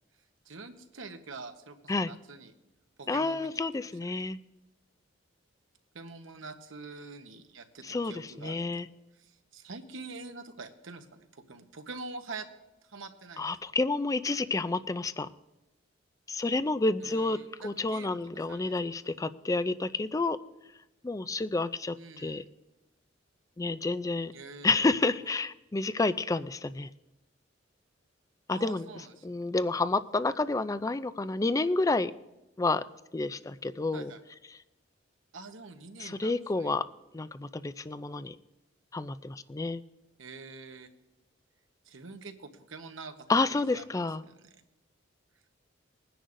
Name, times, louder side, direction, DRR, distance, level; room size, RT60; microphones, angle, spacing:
voice 1, 0.4-2.5 3.0-4.2 5.9-8.8 9.1-12.5 12.8-13.5 17.0-18.7 22.0-22.5 24.3-25.1 28.5-29.3 33.9-34.2 35.3-36.7 40.2-40.9 41.8-43.1 43.4-44.6, right 3 dB, 85° right, 7 dB, 1.1 m, -46 dB
voice 2, 3.1-4.4 7.9-8.1 8.4-8.9 13.4-15.3 16.3-17.4 17.6-20.4 21.0-22.4 23.6-24.3 24.6-26.9 28.5-28.8 29.2-32.1 32.6-32.8 33.1-34.1 36.0-36.8 37.1-38.3 38.9-39.8 43.3-44.2, left 3 dB, 15° left, 14 dB, 0.4 m, -29 dB
21.5 x 10.0 x 2.6 m, 0.99 s
head